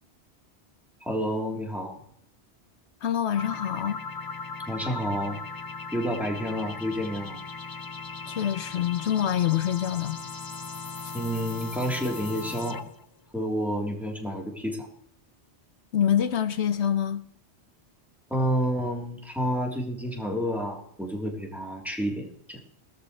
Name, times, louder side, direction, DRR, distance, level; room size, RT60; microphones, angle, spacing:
voice 1, 1.0-2.0 4.7-5.4 5.9-7.4 11.1-12.8 13.3-14.9 18.3-22.6, equal, ahead, 3.5 m, -29 dB
voice 2, 3.0-4.0 8.3-10.2 15.9-17.3, left 10 dB, 80° left, 1.0 m, -26 dB
sound 1, 3.3-13.1, left 4 dB, 30° left, 0.4 m, -38 dB
19.0 x 13.5 x 3.3 m
omnidirectional pair, 1.1 m